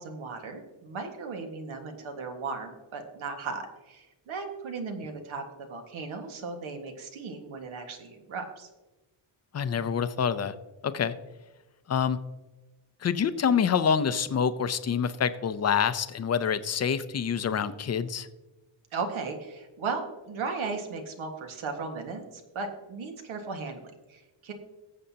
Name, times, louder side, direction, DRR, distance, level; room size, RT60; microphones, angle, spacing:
voice 1, 0.0-8.7 18.9-24.5, right 4 dB, 80° right, 4 dB, 1.7 m, -36 dB
voice 2, 9.5-10.5 10.8-11.1 11.9-12.2 13.0-18.3, left 7 dB, 35° left, 13 dB, 0.5 m, -26 dB
19.0 x 7.8 x 2.8 m, 1.1 s
wide cardioid pair, 165°, 47 cm